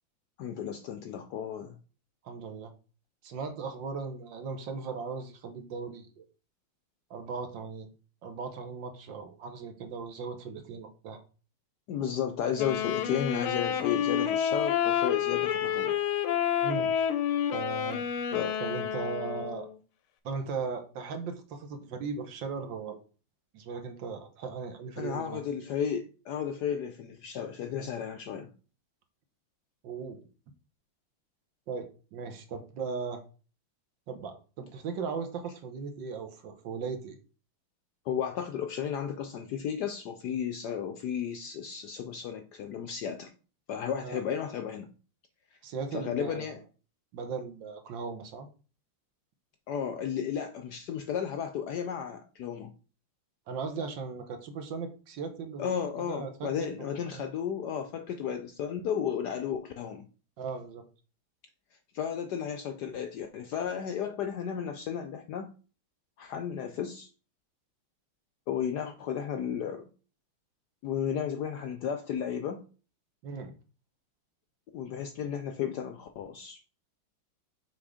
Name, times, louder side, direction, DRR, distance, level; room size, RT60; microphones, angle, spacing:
voice 1, 0.4-1.8 11.9-15.9 18.3-18.6 25.0-28.5 38.1-43.3 43.7-44.9 45.9-46.6 49.7-52.7 55.6-60.1 61.9-65.5 66.2-67.1 68.5-69.9 70.8-72.6 74.7-76.6, left 8 dB, 70° left, 1.0 m, -33 dB
voice 2, 2.2-2.7 3.2-6.2 7.1-7.9 8.2-11.2 16.6-17.1 17.5-18.0 18.6-19.7 20.2-23.0 23.5-25.4 29.8-30.2 31.7-33.2 34.1-37.2 44.0-44.2 45.6-46.5 47.1-48.5 53.5-57.2 60.4-60.8 73.2-73.5, right 5 dB, 65° right, 1.6 m, -38 dB
Wind instrument woodwind instrument, 12.6-19.7, left 9 dB, 90° left, 1.5 m, -29 dB
6.1 x 4.2 x 4.9 m
omnidirectional pair, 2.3 m